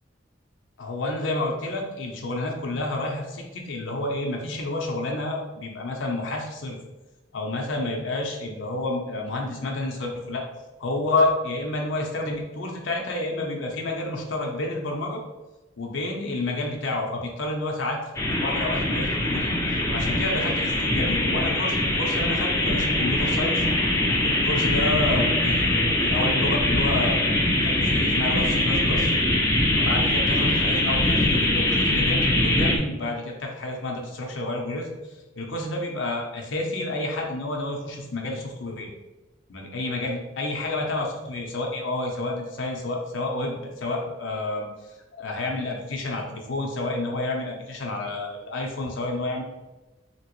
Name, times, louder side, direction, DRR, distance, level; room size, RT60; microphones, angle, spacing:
voice 1, 0.8-6.8 7.3-10.4 10.8-15.2 15.8-18.0 18.3-19.6 19.9-23.6 24.2-27.2 27.6-29.1 29.7-34.9 35.4-38.9 39.5-44.7 45.1-49.4, left 2 dB, 75° left, 1 dB, 0.6 m, -29 dB
sound 1, 18.1-32.8, left 1 dB, 15° left, 0.4 m, -22 dB
3.1 x 2.9 x 3.0 m, 1.1 s
head